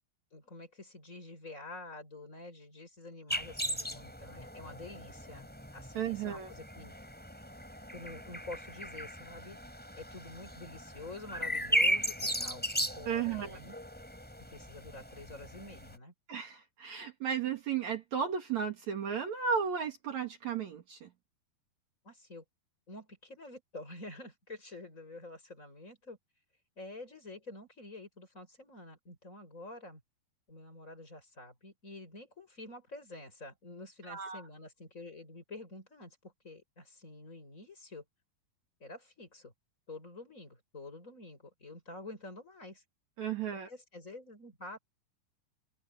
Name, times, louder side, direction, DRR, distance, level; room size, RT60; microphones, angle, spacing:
voice 1, 0.3-5.5 5.7-6.9 7.9-9.6 10.0-12.6 13.0-13.8 14.5-16.1 22.0-22.4 22.9-26.2 26.8-30.0 30.5-38.0 38.8-39.5 39.9-42.8 43.7-44.8, left 2 dB, 20° left, 5.7 m, -48 dB
sound 1, 3.3-16.0, equal, 5° left, 4.8 m, -37 dB
voice 2, 5.9-6.5 13.1-13.6 16.3-21.1 34.1-34.4 43.2-43.7, right 7 dB, 60° right, 3.0 m, -34 dB
omnidirectional pair, 4.0 m